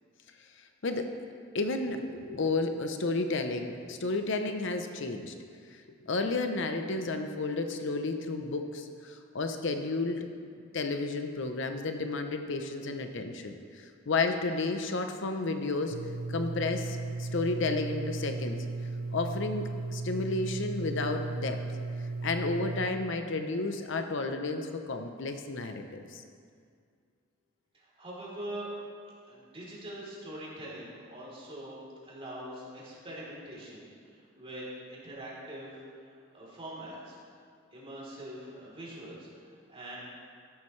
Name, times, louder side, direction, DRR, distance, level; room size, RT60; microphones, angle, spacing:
voice 1, 1.5-5.3 6.1-10.3 10.7-13.6 14.1-16.0 16.3-18.6 19.1-21.6 22.2-26.2, left 3 dB, 65° left, 6 dB, 0.7 m, -32 dB
Wire Tone, 15.9-22.9, right 3 dB, 80° right, 0.5 m, -36 dB
voice 2, 27.7-28.7 29.2-37.2 37.7-40.0, right 1 dB, 30° right, -6 dB, 3.5 m, -43 dB
14.0 x 12.0 x 3.2 m, 2.2 s
head